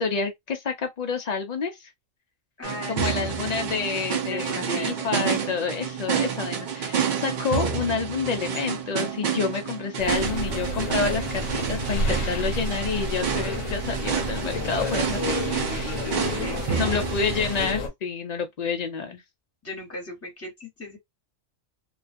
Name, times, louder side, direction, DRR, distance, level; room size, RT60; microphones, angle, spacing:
voice 1, 0.0-1.9 2.9-15.8 16.3-16.4 16.8-19.2, left 5 dB, 65° left, 0.4 m, -29 dB
voice 2, 2.6-3.3 4.3-5.0 16.4-17.1 19.6-21.0, left 2 dB, 10° left, 0.9 m, -37 dB
sound 1, 2.6-17.7, right 7 dB, 60° right, 0.5 m, -29 dB
sound 2, 10.0-17.9, left 2 dB, 85° left, 1.1 m, -31 dB
2.4 x 2.2 x 2.5 m
omnidirectional pair, 1.3 m